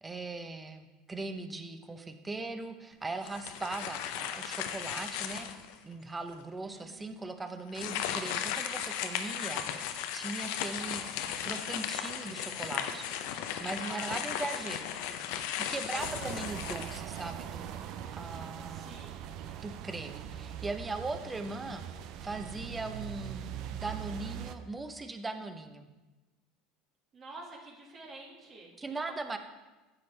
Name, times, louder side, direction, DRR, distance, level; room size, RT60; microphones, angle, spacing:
voice 1, 0.0-5.5 5.8-11.0 11.4-13.1 13.6-14.9 15.7-17.9 18.1-19.0 19.6-21.8 22.2-25.9 28.8-29.4, right 3 dB, 20° right, 8 dB, 0.8 m, -39 dB
sound 1, 3.2-5.8 6.3-6.4 7.7-17.5, left 9 dB, 70° left, 0.6 m, -36 dB
voice 2, 6.6-7.6 13.8-14.2 14.5-14.6 14.9-15.2 15.9-16.4 18.7-19.3 27.1-28.7 29.1-29.4, right 2 dB, 40° right, -1 dB, 1.7 m, -49 dB
sound 2, 16.0-24.6, right 10 dB, 60° right, 0.5 m, -41 dB
9.7 x 7.0 x 3.3 m, 1.1 s
hypercardioid pair, 85°, 0 cm